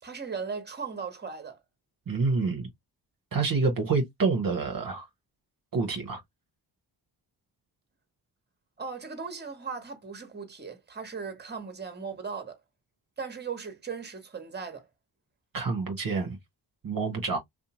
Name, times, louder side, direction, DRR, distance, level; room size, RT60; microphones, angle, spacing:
voice 1, 0.0-1.6 8.8-12.6 13.2-14.9, right 5 dB, 20° right, 1.0 m, -37 dB
voice 2, 2.1-2.7 3.3-5.1 5.7-6.2 15.5-16.4 16.8-17.4, right 4 dB, 45° right, 0.8 m, -27 dB
2.7 x 2.2 x 2.9 m
supercardioid pair, 40°, 47 cm